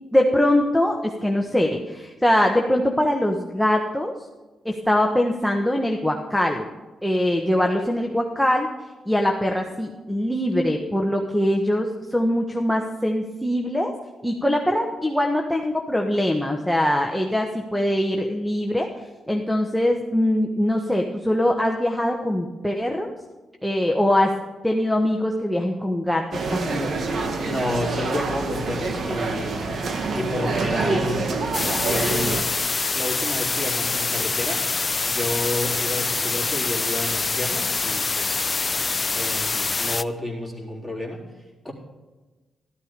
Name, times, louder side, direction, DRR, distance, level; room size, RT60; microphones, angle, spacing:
voice 1, 0.1-4.1 4.6-6.7 7.0-8.7 9.0-13.9 14.2-18.9 19.3-23.1 23.6-24.3 24.6-27.0, left 1 dB, 5° left, 1 dB, 1.2 m, -22 dB
sound 1, 26.3-32.4, right 3 dB, 60° right, 1.6 m, -26 dB
voice 2, 27.4-31.3 31.8-32.5 32.9-34.6 35.0-38.4 39.1-41.3 41.6-41.7, left 1 dB, 15° right, -1 dB, 3.8 m, -30 dB
sound 2, 31.5-40.0, left 4 dB, 35° left, 0.5 m, -25 dB
13.0 x 13.0 x 5.2 m, 1.2 s
cardioid pair, 75°, 0 cm